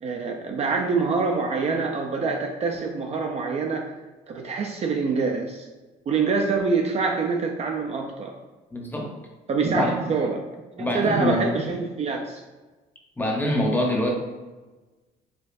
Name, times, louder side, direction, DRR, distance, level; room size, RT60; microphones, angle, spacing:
voice 1, 0.0-3.8 4.3-5.7 6.1-8.3 9.5-10.4 10.8-12.4, right 4 dB, 40° right, 2 dB, 0.4 m, -25 dB
voice 2, 8.7-9.1 9.7-10.1 10.8-11.5 13.2-14.1, left 1 dB, 10° left, -1 dB, 0.7 m, -25 dB
4.4 x 2.4 x 2.6 m, 1.2 s
cardioid pair, 110°, 17 cm